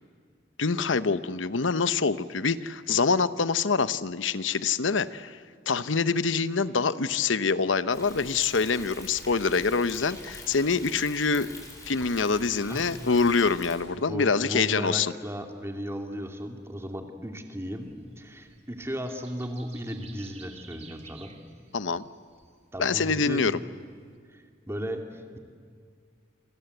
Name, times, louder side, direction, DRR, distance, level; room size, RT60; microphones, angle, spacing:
voice 1, 0.6-5.4 5.7-11.5 11.8-15.1 21.7-22.1 22.8-23.6, left 4 dB, 85° left, 14 dB, 0.9 m, -25 dB
Thunder, 7.9-13.8, left 2 dB, 20° left, 6.3 m, -45 dB
voice 2, 12.6-12.9 14.1-21.4 22.7-23.6 24.3-25.4, equal, 15° right, 4 dB, 2.6 m, -36 dB
sound 1, 17.8-24.2, right 5 dB, 35° right, 2.7 m, -54 dB
30.0 x 24.5 x 8.0 m, 2.1 s
head